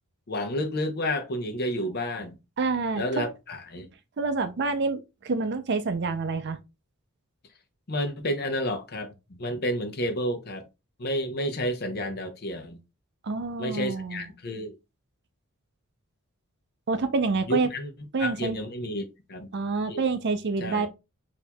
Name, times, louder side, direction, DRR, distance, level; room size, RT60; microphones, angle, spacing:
voice 1, 0.3-2.4 3.0-3.9 7.9-10.6 11.0-12.8 13.6-14.7 17.5-17.9 18.2-19.5 19.9-20.0 20.6-20.9, equal, 50° left, 0.7 m, -30 dB
voice 2, 2.6-3.3 4.2-6.6 13.2-14.3 16.9-17.7 18.1-18.6 19.5-20.9, right 4 dB, 50° right, 0.5 m, -27 dB
4.4 x 2.7 x 2.2 m
head